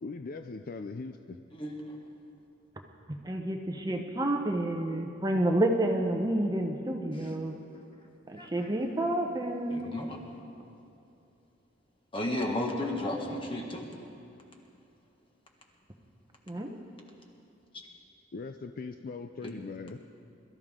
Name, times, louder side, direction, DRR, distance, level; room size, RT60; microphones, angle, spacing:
voice 1, 0.0-1.4 18.3-20.0, left 4 dB, 45° left, 8 dB, 0.4 m, -40 dB
voice 2, 1.5-2.0 8.4-8.7 9.7-10.2 12.1-13.9 19.4-19.6, left 1 dB, 25° left, 1 dB, 1.6 m, -34 dB
voice 3, 3.2-7.6 8.3-10.0 16.5-16.8, right 1 dB, 20° right, 3 dB, 0.8 m, -29 dB
22.0 x 13.5 x 3.7 m, 2.8 s
head